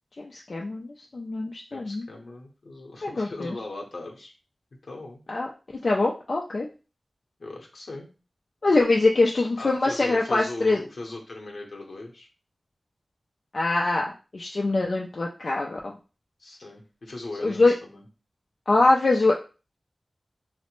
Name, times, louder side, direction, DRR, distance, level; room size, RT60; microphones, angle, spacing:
voice 1, 0.2-2.0 3.0-3.5 5.3-5.5 5.8-6.7 8.6-10.8 13.5-14.0 14.3-15.9 17.4-17.7 18.7-19.3, left 2 dB, 65° left, -1 dB, 0.4 m, -23 dB
voice 2, 1.7-4.3 4.8-5.2 7.4-8.1 9.6-12.3 16.4-18.1, left 2 dB, 80° left, 1 dB, 0.8 m, -39 dB
3.1 x 2.0 x 3.0 m, 0.33 s
wide cardioid pair, 85°, 0 cm